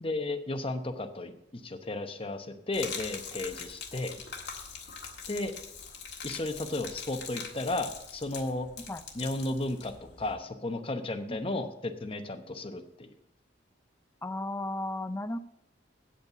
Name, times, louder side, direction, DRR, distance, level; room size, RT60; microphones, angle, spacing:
voice 1, 0.0-4.2 5.3-5.5 6.2-8.7 9.1-13.1, left 2 dB, 30° left, 8 dB, 0.9 m, -34 dB
Gurgling / Liquid, 2.7-10.4, left 6 dB, 65° left, 1.6 m, -43 dB
voice 2, 14.2-15.4, left 2 dB, 15° left, 13 dB, 0.4 m, -34 dB
8.7 x 8.3 x 6.7 m, 0.81 s
head